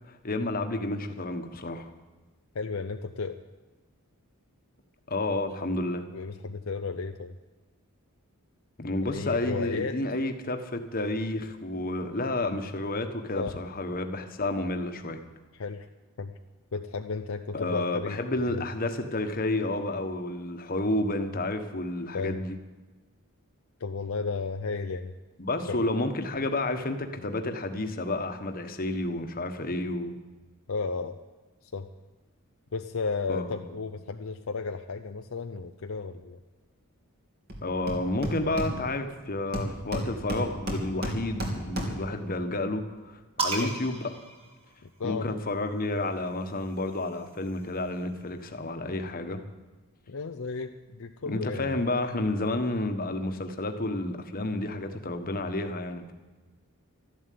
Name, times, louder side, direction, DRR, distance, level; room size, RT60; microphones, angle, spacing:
voice 1, 0.1-1.9 5.1-6.1 8.8-15.2 17.5-22.6 25.4-30.1 33.3-33.7 37.6-44.1 45.0-49.4 51.3-56.1, left 2 dB, 40° left, 6 dB, 1.3 m, -30 dB
voice 2, 2.5-3.4 6.1-7.4 9.0-10.0 13.3-13.6 15.5-15.9 16.2-16.3 16.7-18.2 18.5-18.6 22.1-22.4 23.8-25.1 25.6-25.8 30.7-31.2 31.6-31.9 32.7-36.4 43.6-43.7 44.8-45.3 50.1-51.8, left 4 dB, 65° left, 6 dB, 0.6 m, -33 dB
Hammer, 37.5-37.6 37.9-39.1 39.5-42.2, equal, 45° right, 3.0 m, -33 dB
sound 1, 43.4-45.2 46.3-48.0, right 3 dB, 25° right, 2.6 m, -36 dB
13.0 x 11.5 x 8.5 m, 1.2 s
head